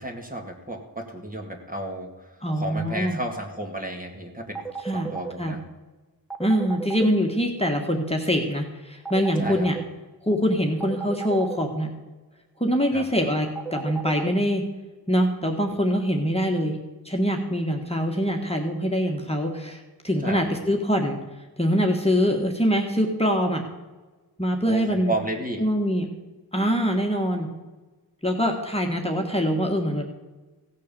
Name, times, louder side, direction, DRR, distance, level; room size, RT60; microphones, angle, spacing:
voice 1, 0.0-4.6 4.9-5.6 9.4-9.7 12.9-13.1 20.2-20.5 24.7-25.6, right 1 dB, 20° right, 2 dB, 2.1 m, -32 dB
voice 2, 2.4-3.2 4.8-5.1 5.4-5.5 6.4-9.8 10.2-11.9 12.6-14.6 15.1-16.7 17.0-21.2 21.6-23.6 24.4-25.1 25.6-26.0 26.5-27.5 28.2-30.0, equal, 15° left, 1 dB, 1.7 m, -24 dB
sound 1, 4.5-5.3 6.3-7.1 9.0-9.8 10.8-11.6 13.5-14.3, right 5 dB, ahead, 1.3 m, -33 dB
16.0 x 6.7 x 6.9 m, 1.2 s
wide cardioid pair, 75°, 40 cm